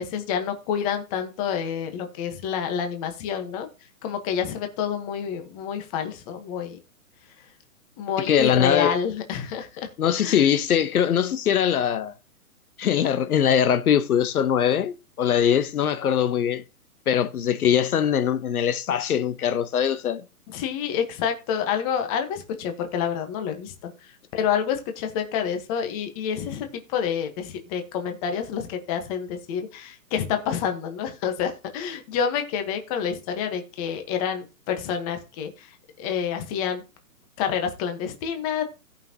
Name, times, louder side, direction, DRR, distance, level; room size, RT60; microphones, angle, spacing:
voice 1, 0.0-3.7 4.0-6.8 8.0-9.7 10.2-10.5 20.5-36.8 37.4-38.6, left 7 dB, 25° left, 1.2 m, -28 dB
voice 2, 8.3-9.0 10.0-12.1 12.8-16.6 17.1-20.2, left 9 dB, 75° left, 1.0 m, -22 dB
17.0 x 5.8 x 2.9 m
hypercardioid pair, 155°, 44 cm